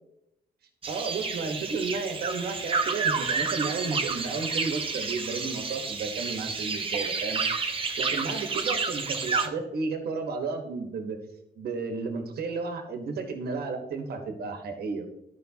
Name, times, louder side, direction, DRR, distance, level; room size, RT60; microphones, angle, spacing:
sound 1, 0.8-9.5, right 4 dB, 35° right, 0.8 m, -30 dB
voice 1, 0.9-7.4 8.0-11.2 11.6-15.1, right 4 dB, 80° right, 4 dB, 1.3 m, -33 dB
13.0 x 5.1 x 2.9 m, 0.82 s
wide cardioid pair, 155°, 16 cm